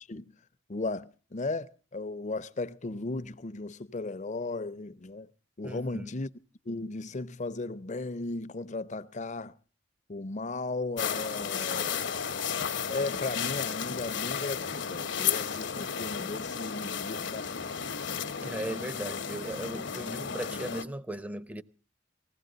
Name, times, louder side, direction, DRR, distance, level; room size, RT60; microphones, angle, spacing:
voice 1, 0.7-5.3 5.6-6.3 6.7-9.5 10.1-12.1 12.9-17.9, left 3 dB, 40° left, 0.7 m, -36 dB
voice 2, 5.6-6.2 18.4-21.6, right 1 dB, 5° right, 0.7 m, -37 dB
sound 1, 11.0-20.8, left 7 dB, 65° left, 1.0 m, -33 dB
20.0 x 16.0 x 3.9 m
head